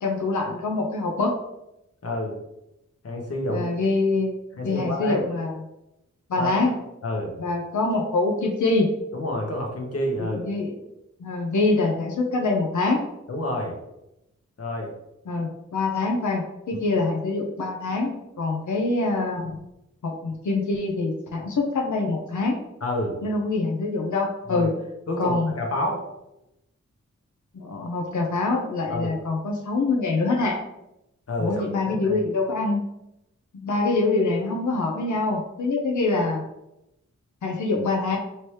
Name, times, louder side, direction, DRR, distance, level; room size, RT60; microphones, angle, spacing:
voice 1, 0.0-1.3 3.5-4.4 4.6-5.5 6.3-6.8 7.4-8.9 10.2-10.7 11.2-13.1 15.3-19.5 20.0-22.6 23.2-24.7 25.2-25.5 27.5-30.6 31.4-32.8 33.5-36.4 37.4-38.2, left 3 dB, 90° left, 0 dB, 0.7 m, -25 dB
voice 2, 2.0-2.4 3.0-3.7 4.5-5.2 6.4-6.7 7.0-7.3 9.1-10.4 13.3-13.8 14.6-14.9 22.8-23.2 24.5-24.7 25.1-26.0 28.9-29.1 31.3-32.2, left 1 dB, 55° left, 0 dB, 1.0 m, -28 dB
4.5 x 2.9 x 3.2 m, 0.88 s
wide cardioid pair, 130°, 29 cm